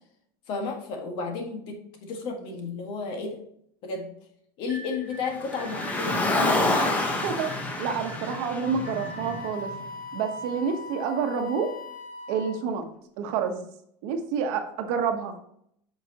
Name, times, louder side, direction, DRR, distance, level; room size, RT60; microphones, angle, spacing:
voice 1, 0.5-3.4 3.8-4.1 4.6-6.7, left 4 dB, 45° left, 3 dB, 1.8 m, -33 dB
sound 1, 4.7-9.6, left 2 dB, 20° right, 1.3 m, -44 dB
Car, 5.4-9.8, left 2 dB, 15° left, 1.1 m, -27 dB
voice 2, 7.8-9.7 10.1-11.7 12.3-12.9 13.2-13.6 14.0-15.4, right 6 dB, 60° right, 6 dB, 1.2 m, -28 dB
Wind instrument woodwind instrument, 8.6-12.8, left 2 dB, 75° left, 1.9 m, -40 dB
8.0 x 5.9 x 3.0 m, 0.70 s
supercardioid pair, 160°, 12 cm